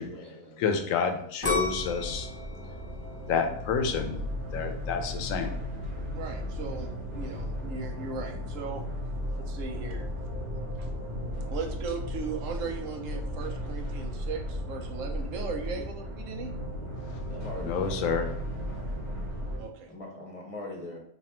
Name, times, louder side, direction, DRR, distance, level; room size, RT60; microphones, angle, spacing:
voice 1, 0.0-0.8 15.3-15.8 17.3-18.0 19.9-21.0, left 2 dB, 35° left, -1 dB, 0.6 m, -42 dB
voice 2, 0.6-2.3 3.3-4.2 4.5-5.5 17.6-18.3, left 6 dB, 80° left, 6 dB, 1.0 m, -29 dB
sound 1, 1.4-4.3 4.8-5.3, left 2 dB, 15° left, 0.9 m, -34 dB
sound 2, 1.4-19.6, left 1 dB, 45° right, 1.0 m, -35 dB
voice 3, 6.1-8.8 9.4-10.1 10.8-10.9 11.5-16.5 19.6-19.9, right 5 dB, 75° right, 3 dB, 1.0 m, -37 dB
3.3 x 2.3 x 4.2 m, 0.69 s
omnidirectional pair, 1.3 m